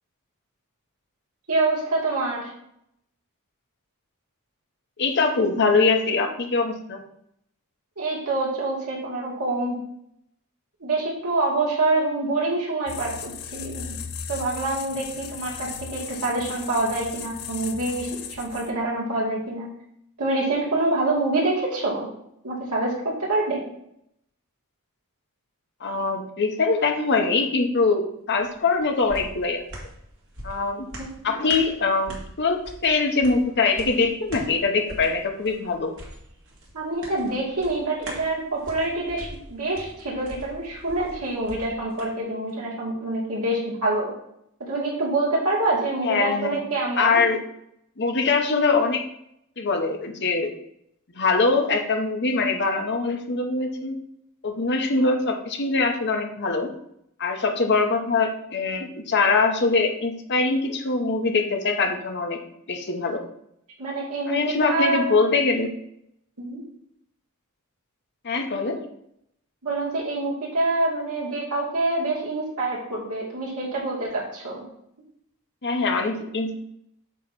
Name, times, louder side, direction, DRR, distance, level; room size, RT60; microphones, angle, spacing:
voice 1, 1.5-2.5 8.0-9.8 10.8-14.0 14.3-18.1 18.4-19.7 20.2-22.1 22.4-23.7 31.0-31.1 36.7-44.1 44.6-47.2 63.8-65.1 66.4-66.6 69.6-74.7, right 2 dB, 80° right, -4 dB, 2.7 m, -26 dB
voice 2, 5.0-7.0 25.8-29.6 30.4-30.9 31.2-35.9 46.0-46.6 47.0-47.4 48.0-49.0 49.6-50.5 51.1-54.0 54.4-56.7 57.2-62.4 62.7-63.2 64.3-65.7 68.2-68.8 75.6-76.6, left 4 dB, 50° left, 4 dB, 1.0 m, -23 dB
sound 1, 12.9-18.9, left 7 dB, 70° left, 0.7 m, -37 dB
sound 2, 28.4-42.1 42.5-42.6, right 1 dB, 60° right, 2.1 m, -42 dB
8.1 x 3.1 x 6.1 m, 0.75 s
head